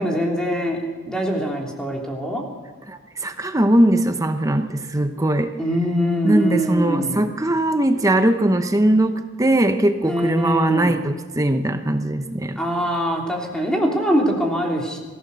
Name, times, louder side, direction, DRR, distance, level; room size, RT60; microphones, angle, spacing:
voice 1, 0.0-2.4 5.6-7.3 10.0-11.0 12.6-15.0, equal, 5° left, -1 dB, 3.2 m, -23 dB
voice 2, 2.9-5.5 6.2-12.6, right 1 dB, 15° right, 7 dB, 0.8 m, -20 dB
24.0 x 15.5 x 6.9 m, 1.4 s
head